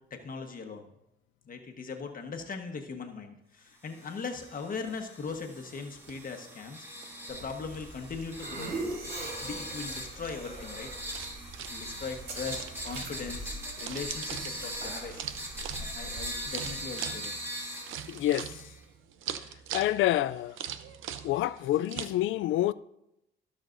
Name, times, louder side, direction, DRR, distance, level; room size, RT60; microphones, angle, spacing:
voice 1, 0.1-0.9 1.4-10.9 11.7-15.5 15.8-17.3, left 5 dB, 45° left, 1.3 m, -40 dB
sound 1, 3.9-18.8, equal, 10° right, 2.8 m, -41 dB
sound 2, 5.4-22.1, right 9 dB, 85° right, 0.7 m, -43 dB
sound 3, 7.3-16.8, right 2 dB, 65° right, 3.5 m, -42 dB
voice 2, 18.1-18.6 19.7-20.6 21.2-22.7, left 14 dB, 80° left, 0.4 m, -27 dB
17.0 x 6.4 x 2.6 m
cardioid pair, 90°, 20 cm